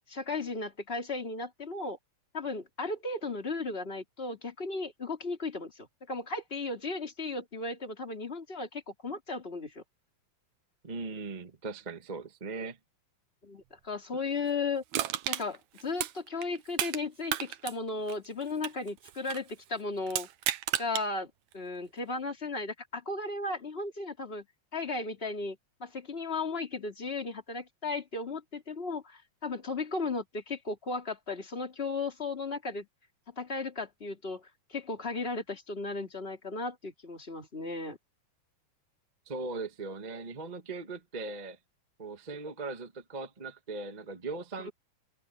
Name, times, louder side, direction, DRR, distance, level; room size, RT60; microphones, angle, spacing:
voice 1, 0.1-2.0 2.3-9.8 13.4-14.8 15.3-20.3 20.8-24.5 24.7-32.9 33.3-38.0 44.6-44.7, left 3 dB, 20° left, 3.1 m, -35 dB
voice 2, 10.8-12.8 39.3-41.6 42.0-44.7, right 3 dB, 35° right, 0.6 m, -39 dB
Crushing, 14.9-17.0 17.3-19.5 20.1-21.1 21.5-21.6, right 12 dB, 70° right, 2.1 m, -33 dB
omnidirectional pair, 3.7 m